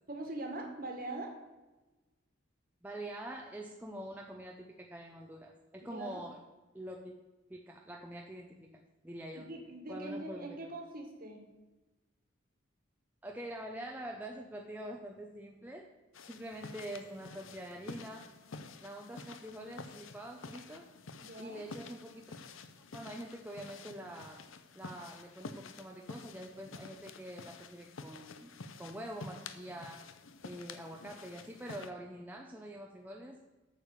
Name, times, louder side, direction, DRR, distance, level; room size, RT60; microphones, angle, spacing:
voice 1, 0.1-1.3 5.8-6.2 9.3-11.4 21.2-21.6, right 2 dB, 45° right, 3 dB, 1.8 m, -42 dB
voice 2, 2.8-6.4 6.7-7.1 7.5-9.5 9.9-10.7 13.2-15.9 16.3-18.3 18.8-20.9 21.4-22.3 22.9-24.4 24.7-30.0 30.4-33.4, right 1 dB, 10° right, 0 dB, 0.7 m, -45 dB
sound 1, 16.1-31.9, left 4 dB, 80° left, 0.8 m, -50 dB
8.6 x 7.1 x 6.6 m, 1.1 s
head